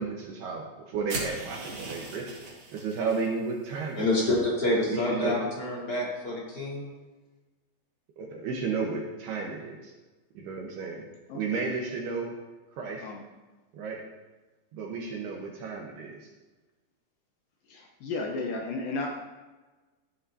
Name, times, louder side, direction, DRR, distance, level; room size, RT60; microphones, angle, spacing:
voice 1, 0.0-2.4 2.7-4.0 4.9-5.4 8.2-9.9 10.4-11.0 11.3-12.3 12.8-13.0 13.7-14.0 14.7-16.3, right 4 dB, 70° right, 0 dB, 2.9 m, -33 dB
sound 1, 1.1-3.3, right 2 dB, 45° right, 2.0 m, -38 dB
voice 2, 4.0-6.9, left 1 dB, 25° left, -5 dB, 4.2 m, -27 dB
voice 3, 11.3-11.6 13.0-13.2 17.7-19.1, left 3 dB, 75° left, 1 dB, 2.1 m, -33 dB
13.5 x 11.0 x 2.8 m, 1.2 s
omnidirectional pair, 5.1 m